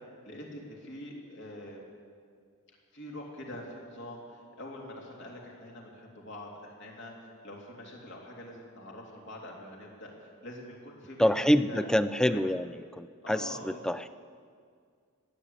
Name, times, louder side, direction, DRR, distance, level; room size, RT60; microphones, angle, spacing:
voice 1, 0.2-1.9 2.9-11.9 12.2-12.4 13.2-14.0, left 1 dB, 55° left, -1 dB, 3.0 m, -44 dB
voice 2, 11.2-12.7 12.9-14.1, equal, 5° left, 13 dB, 0.3 m, -26 dB
17.0 x 10.5 x 8.2 m, 2.1 s
head